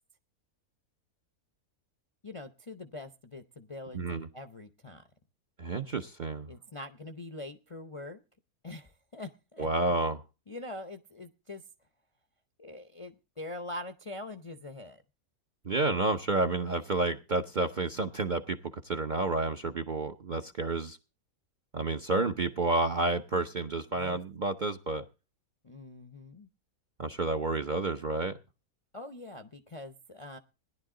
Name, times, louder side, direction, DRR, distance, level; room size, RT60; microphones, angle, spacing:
voice 1, 2.2-5.0 6.5-8.2 8.6-10.0 10.5-11.6 12.6-15.0 23.9-24.2 25.6-26.5 28.9-30.4, left 2 dB, 35° left, 8 dB, 0.5 m, -43 dB
voice 2, 3.9-4.3 5.6-6.5 9.6-10.2 15.7-18.6 18.8-21.0 21.7-25.0 27.0-28.4, right 2 dB, 45° right, 6 dB, 0.6 m, -30 dB
17.5 x 11.0 x 3.8 m, 0.31 s
omnidirectional pair, 1.6 m